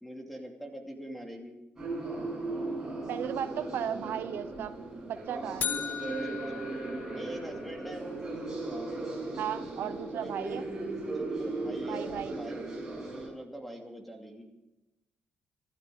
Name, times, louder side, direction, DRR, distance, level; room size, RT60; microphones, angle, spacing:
voice 1, 0.0-1.6 5.9-6.7 7.1-8.1 10.1-10.7 11.1-12.6 13.0-14.5, right 1 dB, ahead, 2 dB, 2.7 m, -44 dB
sound 1, 1.8-13.3, right 2 dB, 15° right, 7.3 m, -37 dB
voice 2, 3.1-4.7 5.1-5.7 9.4-10.6 11.9-12.3, right 9 dB, 80° right, 11 dB, 0.9 m, -35 dB
sound 2, 5.6-7.7, left 8 dB, 55° left, 0.9 m, -37 dB
26.0 x 13.0 x 3.9 m, 0.97 s
cardioid pair, 150°, 4 cm